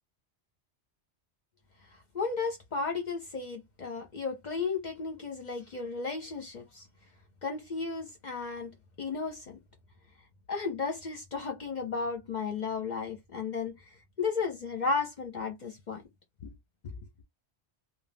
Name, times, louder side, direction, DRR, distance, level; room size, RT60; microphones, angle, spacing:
voice 1, 2.1-6.8 7.4-8.7 9.0-9.6 10.5-13.8 14.2-16.0 16.4-16.5 16.8-16.9, left 4 dB, 50° left, 0.6 m, -34 dB
2.3 x 2.2 x 3.3 m
omnidirectional pair, 1.2 m